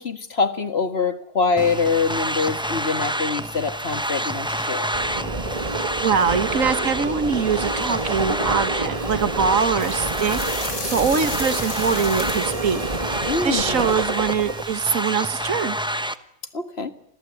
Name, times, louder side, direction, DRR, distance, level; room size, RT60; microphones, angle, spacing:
voice 1, 0.0-4.9 13.3-13.9 16.5-16.9, left 4 dB, 50° left, 2.0 m, -24 dB
sound 1, 1.6-16.2, right 1 dB, 5° right, 1.0 m, -29 dB
sound 2, 4.9-14.6, right 3 dB, 25° right, 2.0 m, -29 dB
voice 2, 6.0-12.8 13.4-15.8, right 6 dB, 75° right, 1.8 m, -23 dB
sound 3, 9.8-14.9, left 3 dB, 90° left, 4.3 m, -35 dB
28.5 x 21.5 x 8.4 m
omnidirectional pair, 1.4 m